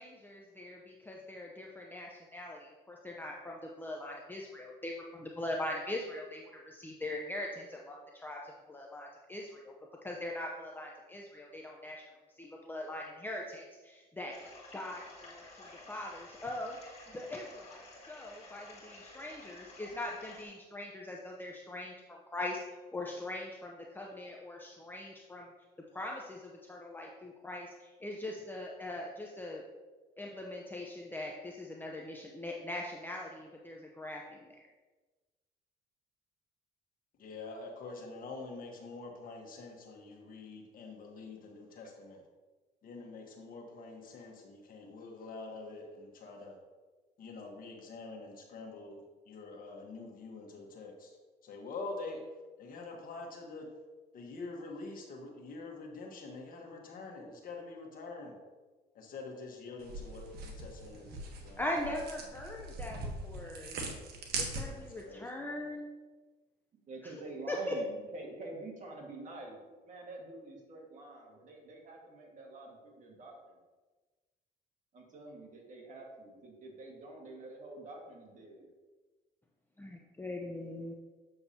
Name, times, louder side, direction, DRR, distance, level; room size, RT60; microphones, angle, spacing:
voice 1, 0.0-9.7 10.0-12.0 12.4-14.4 14.7-16.8 17.1-22.6 22.9-25.5 25.9-29.6 30.2-34.6 61.6-63.8 64.4-65.9 67.5-67.8 79.8-80.9, left 1 dB, 10° left, -1 dB, 0.7 m, -41 dB
sound 1, 14.3-20.4, left 2 dB, 40° left, 2.0 m, -52 dB
voice 2, 37.2-42.2 42.8-46.6 47.2-51.2 51.4-52.2 52.6-53.7 54.1-58.4 58.9-61.9 64.7-65.7, left 3 dB, 55° left, 1 dB, 1.4 m, -46 dB
sound 2, 59.8-65.0, right 2 dB, 70° right, 1.3 m, -41 dB
voice 3, 66.9-73.6 74.9-78.7, right 2 dB, 50° right, 0 dB, 1.8 m, -47 dB
7.9 x 6.8 x 2.8 m, 1.3 s
cardioid pair, 110°, 17 cm